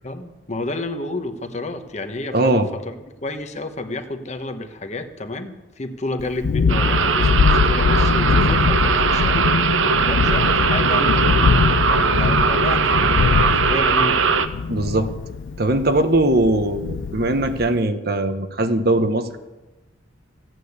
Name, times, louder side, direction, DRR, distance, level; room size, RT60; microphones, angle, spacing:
voice 1, 0.0-9.5 10.0-14.4, left 2 dB, 35° left, 7 dB, 1.2 m, -30 dB
voice 2, 2.3-2.7 14.7-15.1 15.6-19.4, right 2 dB, 55° right, 9 dB, 1.1 m, -20 dB
Thunderstorm, 6.2-17.8, left 5 dB, 80° left, 0.4 m, -22 dB
sound 1, 6.7-14.5, right 5 dB, 90° right, 0.9 m, -19 dB
15.5 x 9.3 x 8.2 m, 1.1 s
head